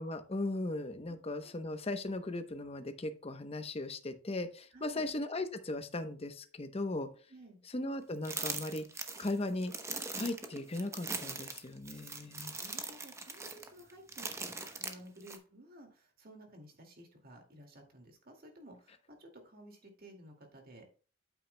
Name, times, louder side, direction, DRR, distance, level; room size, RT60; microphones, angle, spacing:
voice 1, 0.0-7.1 7.7-8.9 9.2-9.7 10.1-12.5, left 2 dB, 30° left, 8 dB, 0.8 m, -37 dB
voice 2, 1.1-1.5 4.7-5.1 7.3-7.6 12.1-12.2 12.6-20.8, right 1 dB, 50° right, 3 dB, 2.1 m, -54 dB
sound 1, 8.2-15.4, right 3 dB, 15° right, 0.8 m, -41 dB
8.6 x 8.4 x 2.2 m, 0.38 s
head